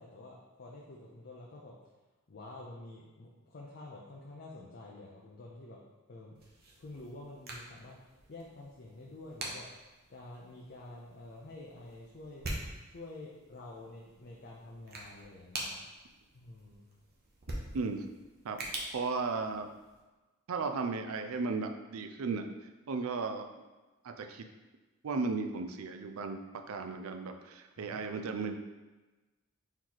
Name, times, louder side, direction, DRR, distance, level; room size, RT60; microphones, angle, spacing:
voice 1, 0.0-1.7 2.3-5.8 6.1-6.4 6.8-9.7 10.1-12.5 12.8-15.8 16.3-16.9 27.8-28.0, left 2 dB, 50° left, -3 dB, 0.5 m, -49 dB
sound 1, 6.3-20.0, right 2 dB, 50° right, 0.8 m, -46 dB
voice 2, 17.7-18.1 18.4-18.6 18.9-19.7 20.5-22.5 22.9-23.5 24.0-24.4 25.0-26.4 26.7-28.6, right 4 dB, 75° right, 6 dB, 0.4 m, -35 dB
4.4 x 3.1 x 3.9 m, 1.2 s
head